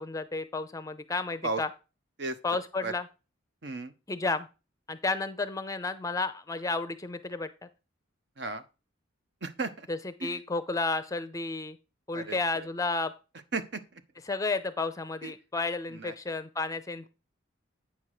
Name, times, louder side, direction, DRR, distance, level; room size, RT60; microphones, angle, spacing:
voice 1, 0.0-1.7 2.4-3.1 4.1-4.5 4.9-7.5 9.9-11.8 12.1-13.1 14.2-17.1, left 3 dB, 15° left, 12 dB, 0.5 m, -32 dB
voice 2, 9.4-9.9 10.2-10.4 12.1-12.7 13.5-13.8 15.2-15.3 16.0-16.1, right 3 dB, 60° right, 10 dB, 0.9 m, -34 dB
8.5 x 5.8 x 4.9 m, 0.30 s
head